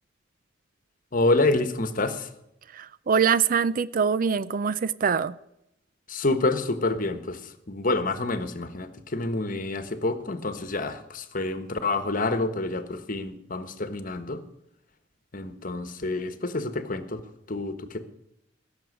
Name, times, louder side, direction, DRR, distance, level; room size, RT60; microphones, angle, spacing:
voice 1, 1.1-2.3 6.1-14.4 15.3-17.2 17.5-18.0, left 2 dB, 45° left, 11 dB, 1.3 m, -28 dB
voice 2, 2.7-5.4, right 6 dB, 45° right, 17 dB, 0.5 m, -24 dB
16.5 x 7.1 x 8.5 m, 0.82 s
head